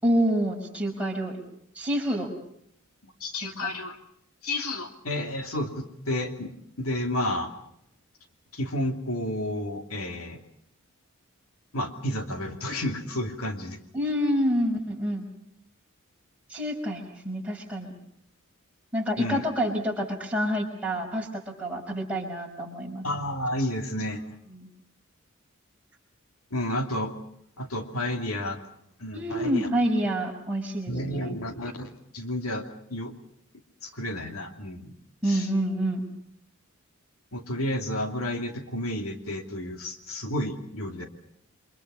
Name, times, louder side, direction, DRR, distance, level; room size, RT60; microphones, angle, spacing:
voice 1, 0.0-1.4 1.8-2.3 3.4-3.7 13.9-15.3 16.5-17.9 18.9-23.0 24.5-24.7 29.1-31.4 35.2-36.1, equal, 5° right, -2 dB, 5.8 m, -28 dB
voice 2, 3.0-4.0 4.4-7.5 8.5-10.4 11.7-13.8 19.2-19.4 23.0-24.2 26.5-27.1 27.6-28.6 29.0-29.7 30.9-32.6 32.9-33.1 33.8-34.9 35.3-35.5 37.3-41.0, left 1 dB, 90° left, 5 dB, 2.7 m, -31 dB
29.5 x 25.0 x 5.5 m, 0.72 s
head